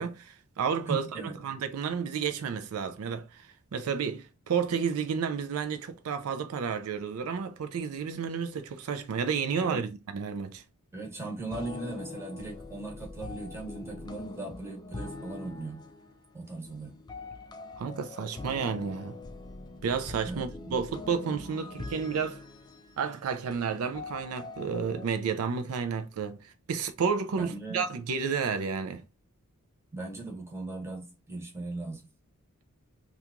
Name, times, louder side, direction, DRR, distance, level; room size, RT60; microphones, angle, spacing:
voice 1, 0.0-10.6 17.8-19.2 19.8-22.4 23.0-29.0, right 6 dB, 75° right, 0.4 m, -31 dB
voice 2, 0.9-1.4 9.6-9.8 10.9-15.9 16.3-16.9 20.2-20.8 27.3-27.8 29.9-32.1, right 2 dB, 10° right, 0.9 m, -38 dB
sound 1, 11.5-25.1, left 3 dB, 20° left, 0.3 m, -43 dB
2.9 x 2.3 x 3.5 m
head